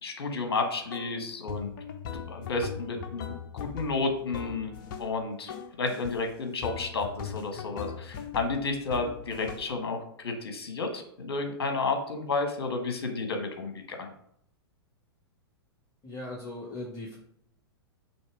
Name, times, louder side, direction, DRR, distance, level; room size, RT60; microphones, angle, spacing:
voice 1, 0.0-1.7 2.3-3.3 3.5-4.7 5.0-5.5 5.8-14.1, left 3 dB, 70° left, 5 dB, 1.4 m, -31 dB
sound 1, 0.9-1.2 1.5-5.2 5.5-6.2 6.6-9.8, left 7 dB, 50° left, 0.7 m, -40 dB
voice 2, 16.0-17.2, left 2 dB, 25° left, -4 dB, 1.7 m, -38 dB
6.2 x 3.2 x 4.8 m, 0.70 s
figure-of-eight pair, 100°, 13 cm